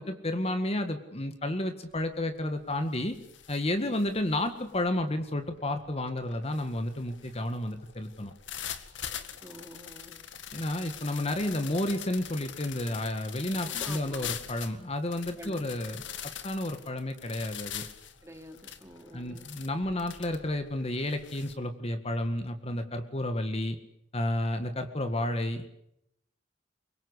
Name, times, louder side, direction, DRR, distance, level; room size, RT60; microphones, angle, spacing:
voice 1, 0.0-3.2 3.5-8.3 10.5-17.9 19.1-23.8 24.1-25.7, left 1 dB, 35° left, 8 dB, 1.9 m, -31 dB
sound 1, 1.9-2.2 2.6-21.5, left 9 dB, 85° left, 2.0 m, -43 dB
voice 2, 9.4-10.2 13.6-14.3 15.4-15.6 18.2-19.5, equal, 15° right, 6 dB, 2.8 m, -47 dB
24.0 x 23.0 x 8.2 m, 0.78 s
head